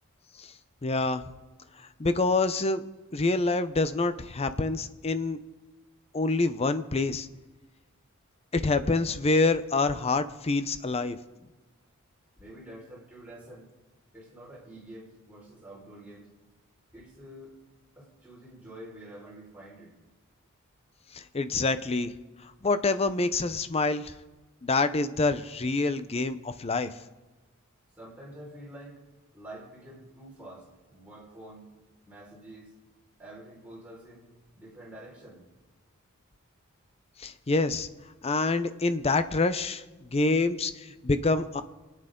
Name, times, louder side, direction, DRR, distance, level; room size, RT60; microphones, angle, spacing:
voice 1, 0.8-1.2 2.0-2.8 3.1-5.4 6.1-7.3 8.5-11.2 21.1-22.1 22.6-24.1 24.6-26.9 37.2-37.9 38.2-41.6, left 3 dB, 30° left, 11 dB, 0.6 m, -26 dB
voice 2, 12.4-13.7 14.1-16.3 16.9-17.5 18.0-19.9 28.0-29.0 29.3-31.7 32.0-32.7 33.2-34.3 34.5-35.4, right 1 dB, 5° right, -6 dB, 4.7 m, -47 dB
26.0 x 9.1 x 3.8 m, 1.2 s
head